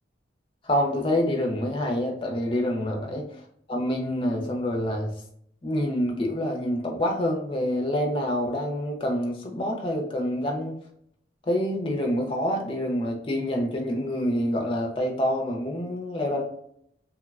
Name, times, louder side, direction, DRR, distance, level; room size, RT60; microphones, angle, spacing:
voice 1, 0.6-3.3 3.7-5.1 5.6-10.8 11.4-16.4, left 1 dB, 30° left, 1 dB, 0.4 m, -27 dB
3.1 x 2.1 x 2.3 m, 0.70 s
head